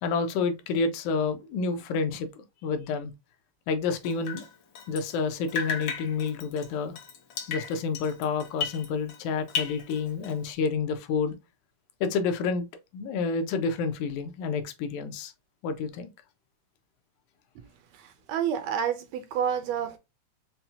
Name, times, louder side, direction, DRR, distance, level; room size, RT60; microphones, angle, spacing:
voice 1, 0.0-3.1 3.7-4.5 4.9-7.0 7.5-11.3 12.0-12.7 12.9-15.3 15.6-16.1, left 4 dB, 90° left, 2.1 m, -29 dB
Drip, 4.0-5.2 5.5-9.2 9.5-10.5, left 6 dB, 70° left, 1.5 m, -35 dB
voice 2, 17.9-20.0, right 8 dB, 80° right, 1.6 m, -29 dB
5.6 x 2.1 x 2.7 m
omnidirectional pair, 3.3 m